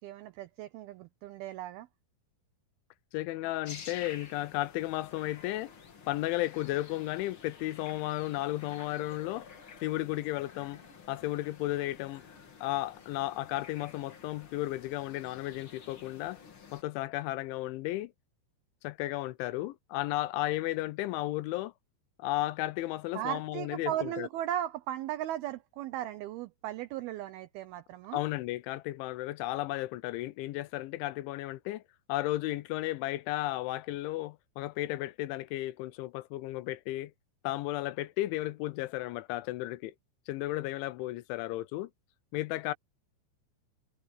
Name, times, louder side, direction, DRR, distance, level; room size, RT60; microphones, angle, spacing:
voice 1, 0.0-1.9 23.2-28.2, right 12 dB, 85° right, 2.2 m, -37 dB
voice 2, 3.1-5.7 6.1-9.5 9.8-10.8 11.1-12.3 12.6-16.4 16.7-18.1 18.8-21.7 22.2-24.3 28.1-31.8 32.1-37.1 37.4-39.9 40.3-41.9 42.3-42.7, left 17 dB, 85° left, 3.2 m, -34 dB
sound 1, 3.6-16.8, left 6 dB, 50° left, 1.6 m, -51 dB
omnidirectional pair, 5.3 m